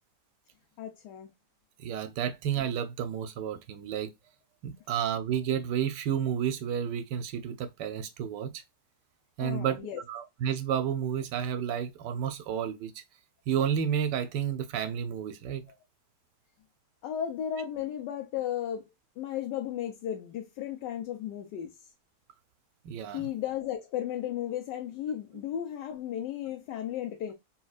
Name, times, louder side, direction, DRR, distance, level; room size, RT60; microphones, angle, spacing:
voice 1, 0.8-1.3 9.4-10.0 17.0-18.8 19.2-21.7 23.1-27.3, left 10 dB, 90° left, 1.3 m, -34 dB
voice 2, 1.8-4.1 4.6-8.6 9.4-9.8 10.1-13.0 13.5-15.7 22.8-23.3, right 8 dB, 90° right, 1.2 m, -31 dB
4.2 x 2.3 x 2.3 m
omnidirectional pair, 1.8 m